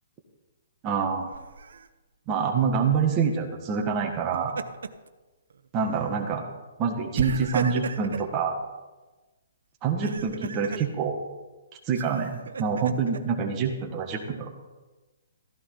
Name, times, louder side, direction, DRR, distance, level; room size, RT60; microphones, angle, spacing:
voice 1, 0.8-1.3 2.3-4.6 5.7-6.4 6.8-8.5 9.8-11.2 11.9-14.5, right 6 dB, 20° right, 2 dB, 1.7 m, -26 dB
Laughter, 1.3-1.9 4.1-5.1 5.5-5.7 7.1-8.3 9.8-10.9 11.9-13.2, right 5 dB, 75° right, 1.0 m, -34 dB
15.0 x 14.5 x 4.0 m, 1.2 s
hypercardioid pair, 165°, 0 cm